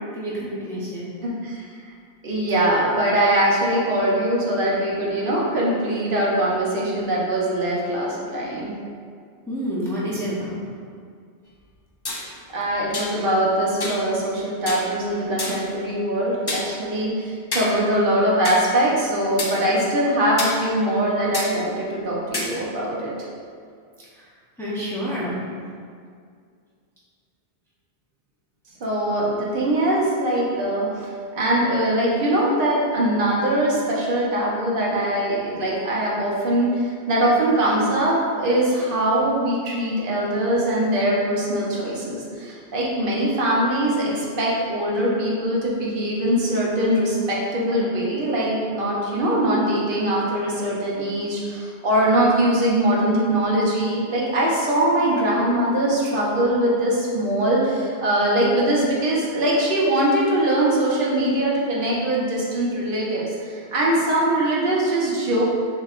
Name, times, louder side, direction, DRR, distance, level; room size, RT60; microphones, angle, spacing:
voice 1, 0.1-1.1 9.5-10.5 24.6-25.4, equal, 5° left, -8 dB, 0.7 m, -28 dB
voice 2, 1.2-1.7 2.2-8.7 12.5-23.1 28.8-65.4, right 1 dB, 55° right, -5 dB, 1.0 m, -22 dB
sound 1, 12.1-12.2 12.9-13.1 13.8-14.0 14.7-14.9 15.4-15.7 16.5-16.7 17.5-17.7 18.4-18.6 19.4-19.5 20.4-20.5 21.3-21.5 22.3-22.5, left 2 dB, 35° left, 0.4 m, -27 dB
6.4 x 2.8 x 2.4 m, 2.2 s
omnidirectional pair, 1.1 m